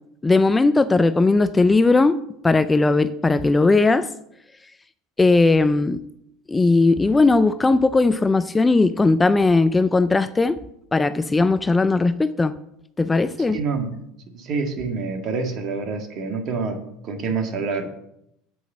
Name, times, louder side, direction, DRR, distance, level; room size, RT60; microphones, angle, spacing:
voice 1, 0.2-2.2 2.4-4.1 5.2-6.0 6.5-10.6 10.9-12.6 13.0-13.6, left 3 dB, 15° left, 0.4 m, -18 dB
voice 2, 13.5-14.0 14.3-17.9, right 4 dB, 50° right, 1.7 m, -27 dB
7.8 x 5.0 x 7.3 m
supercardioid pair, 100°, 0 cm